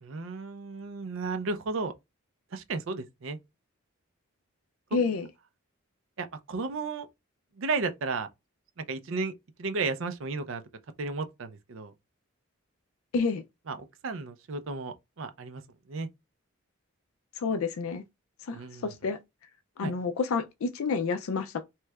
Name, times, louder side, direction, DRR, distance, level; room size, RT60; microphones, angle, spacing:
voice 1, 0.0-1.9 2.5-3.4 6.2-7.1 7.6-8.3 8.8-9.3 9.6-10.6 11.0-11.9 13.7-15.6 15.9-16.1 18.5-18.9 19.8-19.9, right 4 dB, 60° right, 0.5 m, -33 dB
voice 2, 4.9-5.3 13.1-13.4 17.4-18.0 18.4-19.2 19.8-21.6, left 4 dB, 75° left, 0.4 m, -29 dB
3.2 x 3.0 x 2.3 m
head